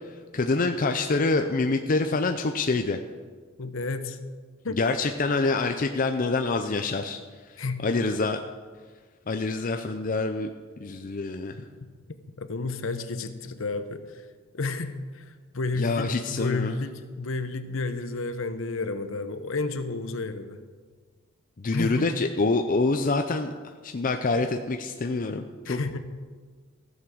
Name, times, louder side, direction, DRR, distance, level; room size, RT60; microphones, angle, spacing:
voice 1, 0.3-3.0 4.8-7.2 7.5-8.4 9.3-10.5 10.8-11.6 15.8-16.8 21.6-23.5 23.8-26.0, left 3 dB, 40° left, 6 dB, 0.5 m, -26 dB
voice 2, 3.6-4.2 4.6-4.8 7.6-7.8 12.4-14.3 14.5-20.6 21.7-22.0 25.7-26.0, left 3 dB, 65° left, 10 dB, 0.8 m, -31 dB
15.0 x 7.3 x 6.2 m, 1.5 s
head